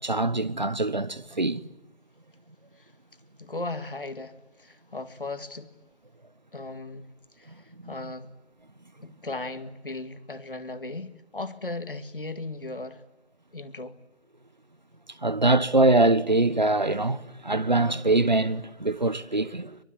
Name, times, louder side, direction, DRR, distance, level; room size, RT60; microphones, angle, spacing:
voice 1, 0.0-1.6 7.8-7.9 15.2-19.8, right 2 dB, 40° right, 1.1 m, -23 dB
voice 2, 3.4-5.7 6.5-7.1 7.3-8.3 9.0-13.0 13.5-14.0, left 2 dB, 50° left, 2.0 m, -37 dB
23.5 x 23.5 x 9.8 m
figure-of-eight pair, 165°, 35 cm